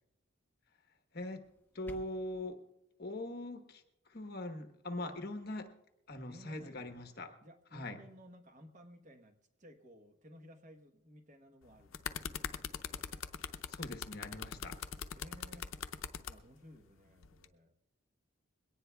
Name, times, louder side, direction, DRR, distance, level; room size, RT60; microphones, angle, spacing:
voice 1, 1.1-1.4 1.7-2.6 3.0-5.7 6.1-7.3 7.7-8.0 13.7-14.8, left 1 dB, 45° left, 6 dB, 1.1 m, -42 dB
sound 1, 1.4-2.4, left 1 dB, 10° left, 0.6 m, -54 dB
voice 2, 6.3-7.0 7.4-12.4 15.1-15.7 16.3-17.7, equal, 35° right, 5 dB, 1.1 m, -57 dB
sound 2, 11.6-16.3 17.2-17.4, left 7 dB, 70° left, 0.6 m, -41 dB
22.0 x 18.0 x 2.3 m, 0.89 s
head